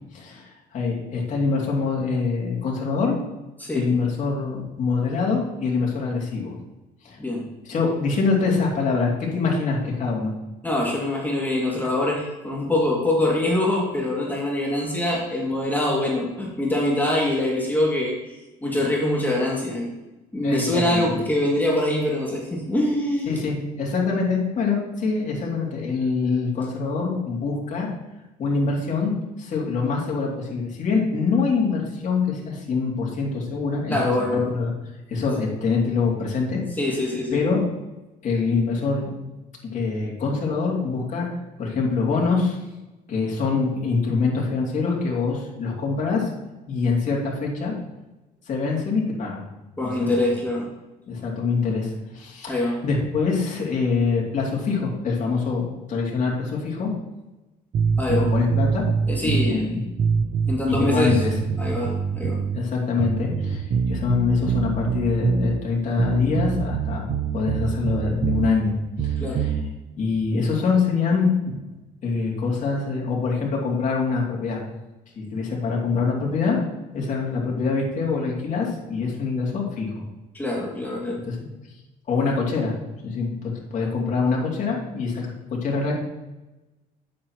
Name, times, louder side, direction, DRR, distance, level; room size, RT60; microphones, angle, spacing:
voice 1, 0.1-3.2 3.7-6.5 7.0-7.2 7.6-10.3 20.4-21.1 23.3-27.9 28.4-29.1 29.4-34.7 35.1-36.6 37.3-37.6 38.2-39.1 39.7-41.3 41.6-42.6 43.1-46.3 46.7-47.7 48.5-49.4 49.8-50.1 51.1-56.9 58.1-58.9 59.2-59.8 60.7-61.4 62.5-68.8 69.0-69.5 70.0-71.6 72.0-74.6 75.1-76.6 76.9-79.9 81.2-81.4 82.1-82.7 83.0-85.9, left 4 dB, 50° left, -3 dB, 2.8 m, -24 dB
voice 2, 10.6-19.9 20.3-23.3 33.9-34.5 36.8-37.4 49.8-50.7 52.5-52.8 58.0-58.3 59.1-59.8 60.5-61.2 61.6-62.4 69.2-69.4 80.3-81.2, left 1 dB, 10° left, -3 dB, 2.4 m, -24 dB
sound 1, 57.7-59.5 60.0-62.6 63.0-65.6 66.0-68.5 69.0-69.6, right 6 dB, 50° right, 0.6 m, -24 dB
9.6 x 7.6 x 3.0 m, 1.0 s
cardioid pair, 110°, 17 cm